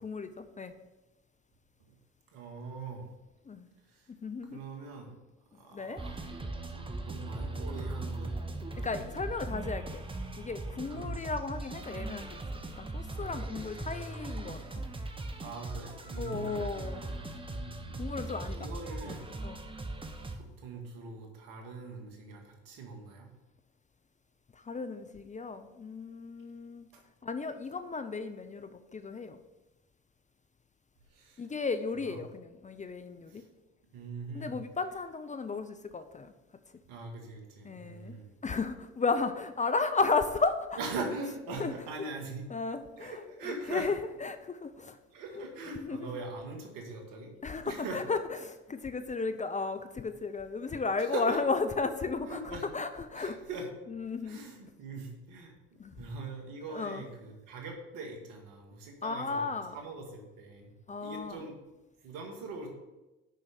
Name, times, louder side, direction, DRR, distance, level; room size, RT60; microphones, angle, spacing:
voice 1, 0.0-0.7 3.5-3.7 4.2-4.6 5.7-6.0 8.8-10.0 10.4-14.8 16.2-17.0 18.0-18.7 19.1-19.2 19.4-19.6 24.7-26.9 27.2-29.4 31.4-33.4 34.3-36.3 37.6-38.2 38.4-40.8 41.6-41.7 42.5-45.0 45.4-46.1 47.4-53.4 53.9-54.4 55.8-55.9 56.7-57.0 59.0-59.8 60.9-61.4, left 4 dB, 20° left, 10 dB, 0.6 m, -34 dB
voice 2, 2.3-3.0 3.9-4.0 4.5-5.1 5.6-6.4 6.7-8.4 10.9-11.2 15.4-16.6 16.9-18.0 18.5-19.2 20.3-23.3 26.9-27.0 31.1-31.4 31.9-32.2 33.3-33.4 33.9-34.6 36.9-38.3 40.8-42.4 43.0-43.9 45.1-47.3 47.7-48.0 51.0-51.4 52.3-52.7 53.1-53.7 54.2-60.7 61.0-61.6 62.0-62.7, right 3 dB, 70° right, 2 dB, 2.0 m, -42 dB
sound 1, 6.0-20.4, right 2 dB, 15° right, 1.0 m, -39 dB
6.4 x 5.6 x 6.5 m, 1.1 s
hypercardioid pair, 65°, 34 cm